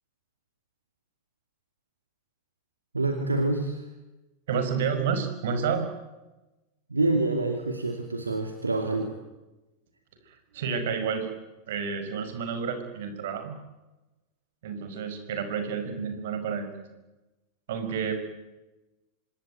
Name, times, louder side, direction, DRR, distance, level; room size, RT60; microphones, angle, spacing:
voice 1, 2.9-3.8 6.9-9.1, right 2 dB, 80° right, 5 dB, 2.6 m, -27 dB
voice 2, 4.5-5.9 10.3-11.3 11.7-13.6 14.6-16.7 17.7-18.1, right 6 dB, 55° right, 8 dB, 5.5 m, -30 dB
26.0 x 21.5 x 9.3 m, 1.0 s
figure-of-eight pair, 90°, 0 cm